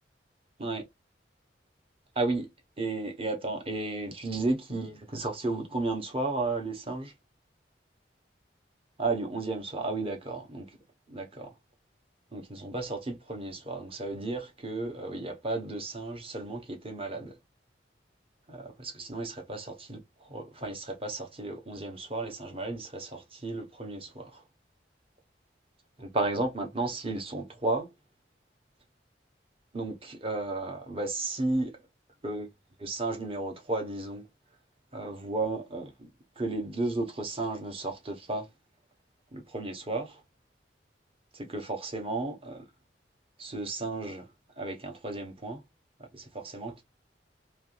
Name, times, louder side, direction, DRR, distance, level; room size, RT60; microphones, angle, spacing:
voice 1, 2.1-2.5 2.8-7.1 9.0-10.8 11.1-11.5 12.3-17.4 18.5-24.4 26.0-27.9 29.7-31.8 32.2-32.5 32.8-34.3 34.9-36.1 36.4-38.5 39.3-40.2 41.3-42.7 43.4-44.3 44.6-45.6 46.1-46.8, right 2 dB, 30° right, 1.0 m, -33 dB
3.4 x 3.0 x 2.5 m
head